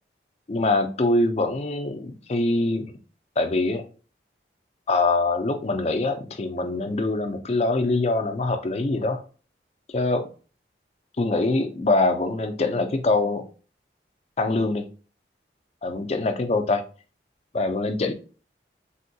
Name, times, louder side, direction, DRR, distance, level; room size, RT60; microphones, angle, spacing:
voice 1, 0.5-2.9 3.4-3.8 4.9-9.2 9.9-10.3 11.2-13.4 14.4-14.8 15.8-16.8 17.5-18.1, left 2 dB, 35° left, 0.4 m, -24 dB
3.5 x 2.2 x 2.6 m
head